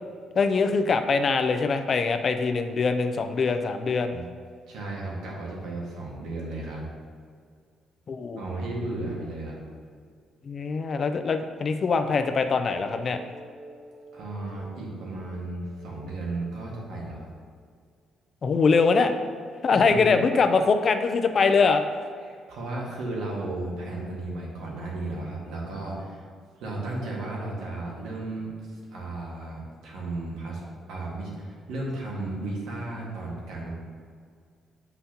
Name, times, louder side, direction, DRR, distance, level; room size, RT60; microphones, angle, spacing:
voice 1, 0.4-4.2 8.1-8.4 10.4-13.2 18.4-19.1 19.6-21.8, left 4 dB, 35° left, 8 dB, 0.4 m, -23 dB
voice 2, 4.7-6.9 8.4-9.6 14.1-17.3 19.7-20.1 22.2-26.3 26.6-30.6 30.9-33.7, right 2 dB, 90° right, -3 dB, 1.6 m, -34 dB
sound 1, 12.9-17.6, equal, 40° right, 1.0 m, -50 dB
8.1 x 5.7 x 2.9 m, 2.1 s
cardioid pair, 160°, 0 cm